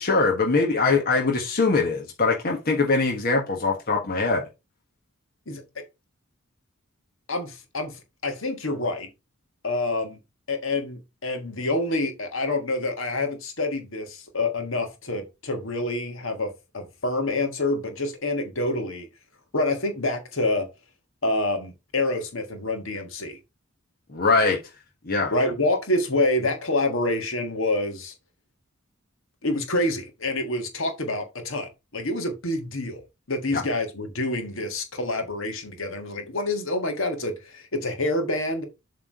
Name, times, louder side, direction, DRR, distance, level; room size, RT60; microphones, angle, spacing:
voice 1, 0.0-4.4 24.1-24.6 25.0-25.3 33.5-33.6, left 3 dB, 45° left, 1.4 m, -22 dB
voice 2, 7.3-9.1 9.6-10.2 10.5-19.1 19.5-20.7 21.2-23.4 25.3-28.1 29.4-33.0 33.3-38.6, left 2 dB, 65° left, 1.6 m, -27 dB
7.5 x 3.7 x 4.7 m
head